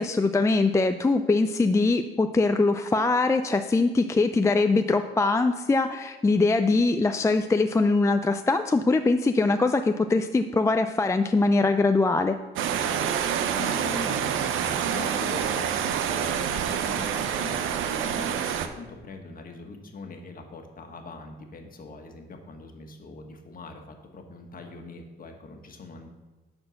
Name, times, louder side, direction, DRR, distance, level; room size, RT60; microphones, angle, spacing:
voice 1, 0.0-12.4, left 3 dB, 15° left, 7 dB, 0.4 m, -22 dB
sound 1, 12.6-18.7, right 8 dB, 85° right, 0.7 m, -27 dB
voice 2, 13.5-26.1, left 3 dB, 45° left, 4 dB, 1.5 m, -42 dB
10.0 x 4.4 x 6.4 m, 1.2 s
cardioid pair, 90°, 20 cm